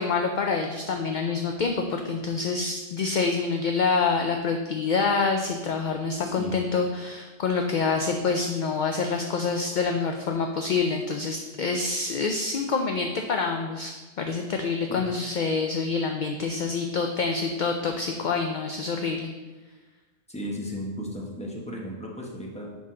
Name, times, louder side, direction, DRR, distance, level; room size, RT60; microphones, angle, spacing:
voice 1, 0.0-19.3, left 4 dB, 60° left, 4 dB, 0.5 m, -27 dB
voice 2, 6.2-6.6 14.9-15.0 20.3-22.8, equal, 5° left, -2 dB, 0.9 m, -35 dB
6.2 x 5.5 x 3.7 m, 1.2 s
omnidirectional pair, 1.1 m